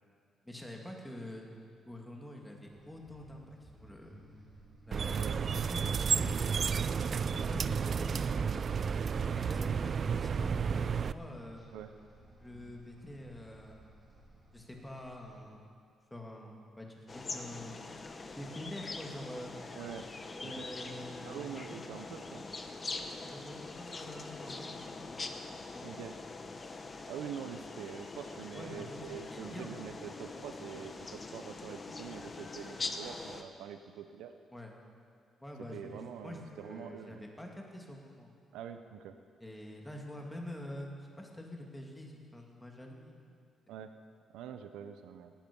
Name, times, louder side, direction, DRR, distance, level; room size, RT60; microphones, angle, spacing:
voice 1, 0.4-1.5 1.9-4.2 4.9-6.4 6.8-8.6 9.3-11.6 12.4-13.8 14.5-15.7 16.1-17.8 18.3-19.5 20.4-21.8 23.3-25.1 25.7-25.9 28.5-29.7 34.5-34.7 35.4-38.3 39.4-43.4, left 1 dB, 10° left, 0 dB, 2.6 m, -46 dB
sound 1, 2.6-15.4, right 2 dB, 25° right, 3.6 m, -58 dB
sound 2, 4.9-11.1, right 6 dB, 50° right, 0.4 m, -31 dB
sound 3, 17.1-33.4, left 3 dB, 30° left, 1.1 m, -43 dB
voice 2, 19.7-20.1 20.4-20.7 21.2-22.5 25.8-26.2 27.1-34.3 35.7-37.2 38.5-39.1 43.7-43.9 44.3-45.3, right 8 dB, 90° right, 8 dB, 0.7 m, -45 dB
18.0 x 12.0 x 5.5 m, 2.2 s
cardioid pair, 90°, 0 cm